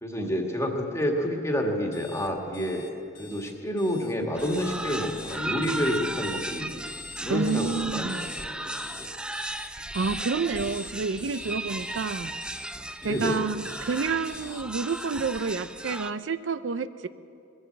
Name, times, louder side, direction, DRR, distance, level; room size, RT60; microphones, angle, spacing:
voice 1, 0.0-2.9 3.2-6.8 7.2-8.1 8.5-9.1 13.0-13.4, equal, 15° left, 1 dB, 1.7 m, -29 dB
sound 1, 1.9-15.0, left 4 dB, 45° left, 1.8 m, -45 dB
sound 2, 4.3-16.1, right 1 dB, 5° right, 0.3 m, -36 dB
voice 2, 7.3-8.2 9.9-12.3 13.0-17.1, right 4 dB, 80° right, 13 dB, 0.5 m, -29 dB
22.0 x 7.9 x 8.0 m, 2.5 s
head